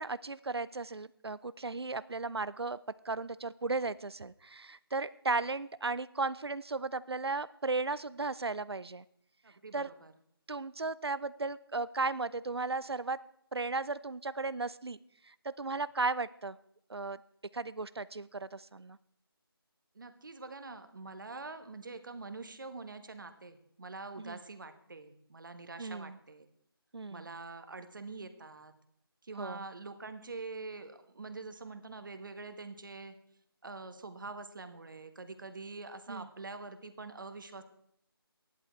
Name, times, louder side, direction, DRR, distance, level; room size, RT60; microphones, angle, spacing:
voice 1, 0.0-2.8 3.0-9.0 9.7-9.9 10.5-13.2 13.5-15.0 15.3-16.6 16.9-17.2 17.5-19.0 24.2-24.4 25.8-26.2 26.9-27.3 29.4-29.6 36.1-36.3, right 3 dB, 85° right, 17 dB, 0.5 m, -35 dB
voice 2, 9.4-10.1 19.9-26.5 27.1-28.7 29.2-33.1 33.6-37.6, right 3 dB, 55° right, 9 dB, 1.4 m, -45 dB
13.0 x 11.0 x 4.5 m, 0.72 s
figure-of-eight pair, 160°, 13 cm